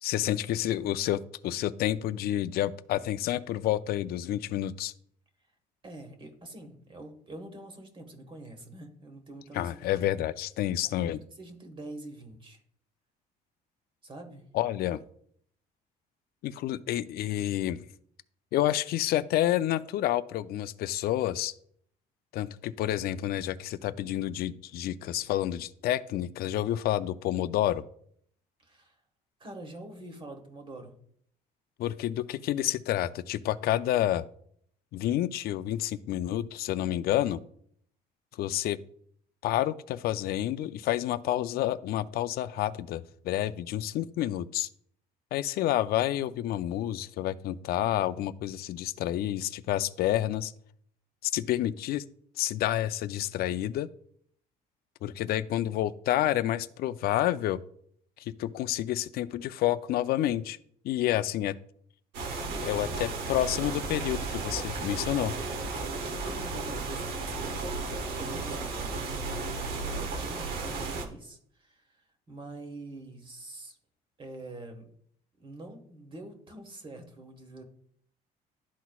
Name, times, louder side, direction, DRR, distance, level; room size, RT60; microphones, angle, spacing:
voice 1, 0.0-4.9 9.5-11.2 14.5-15.0 16.4-17.9 18.5-21.5 22.3-27.8 31.8-34.3 34.9-37.4 38.3-38.8 39.4-44.7 45.3-50.5 51.2-52.0 52.4-53.9 55.0-57.6 58.2-60.6 60.8-61.6 62.6-65.3, left 13 dB, 65° left, 15 dB, 0.4 m, -29 dB
voice 2, 5.8-10.1 11.0-12.6 14.0-14.5 28.6-29.0 29.4-30.9 62.5-63.1 66.1-67.5 68.2-73.8 74.2-74.9 75.4-77.6, right 2 dB, 30° right, 5 dB, 1.4 m, -45 dB
sound 1, 62.1-71.1, right 3 dB, 85° right, 1.0 m, -34 dB
12.0 x 4.1 x 2.3 m, 0.65 s
cardioid pair, 110°, 17 cm